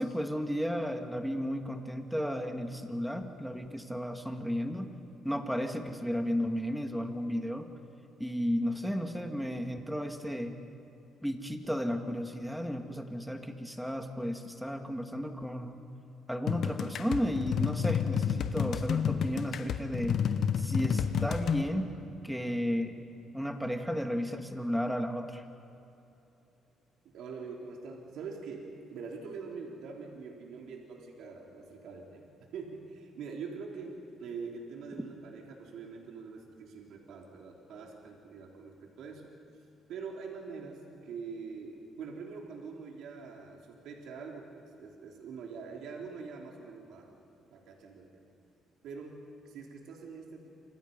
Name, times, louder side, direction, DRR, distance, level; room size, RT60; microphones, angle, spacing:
voice 1, 0.0-4.9 5.2-7.7 8.2-10.5 11.2-15.8 16.3-20.2 20.6-21.9 22.2-22.9 23.3-25.4, equal, ahead, 4 dB, 2.2 m, -33 dB
sound 1, 16.5-21.6, left 7 dB, 65° left, 1.2 m, -30 dB
voice 2, 27.1-39.3 39.9-47.1 47.5-48.2 48.8-50.5, right 5 dB, 75° right, 0 dB, 3.5 m, -44 dB
28.5 x 26.0 x 5.4 m, 2.9 s
cardioid pair, 100°, 0 cm